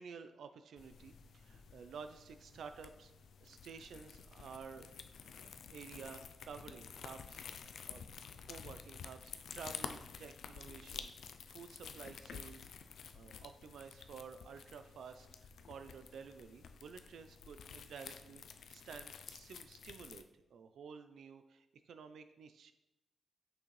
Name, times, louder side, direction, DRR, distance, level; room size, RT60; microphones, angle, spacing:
voice 1, 0.0-3.1 3.4-4.9 5.4-7.4 7.9-8.0 8.3-20.2 20.5-22.7, right 6 dB, 80° right, 9 dB, 0.4 m, -52 dB
sound 1, 0.8-20.2, left 6 dB, 75° left, 0.4 m, -51 dB
6.3 x 5.9 x 3.1 m, 0.90 s
wide cardioid pair, 145°, 0 cm